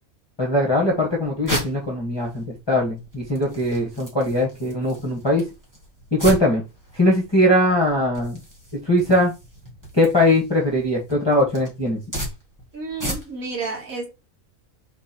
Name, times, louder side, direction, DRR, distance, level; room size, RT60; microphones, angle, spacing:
voice 1, 0.4-5.5 6.1-6.6 6.9-8.4 8.7-9.3 9.9-12.0, left 1 dB, 20° left, 1.6 m, -20 dB
sound 1, 0.8-13.6, equal, 15° right, 2.5 m, -36 dB
voice 2, 12.7-14.1, right 3 dB, 75° right, 2.4 m, -31 dB
4.8 x 4.5 x 4.5 m
omnidirectional pair, 1.4 m